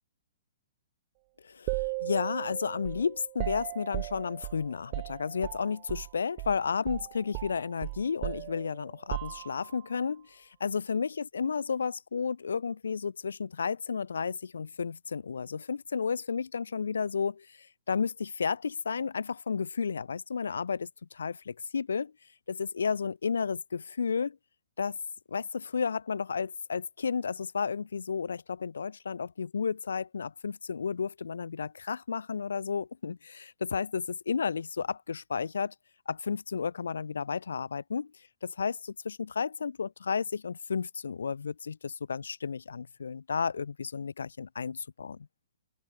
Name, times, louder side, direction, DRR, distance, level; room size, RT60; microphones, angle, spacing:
voice 1, 1.4-17.5 17.9-22.1 22.5-24.4 24.8-25.0 25.3-35.7 36.1-38.1 38.4-45.3, left 5 dB, 80° left, 1.4 m, -32 dB
sound 1, 1.7-6.1 6.4-6.6 6.9-9.8, right 32 dB, 40° right, 0.9 m, -37 dB
open air
hypercardioid pair, 125°, 0 cm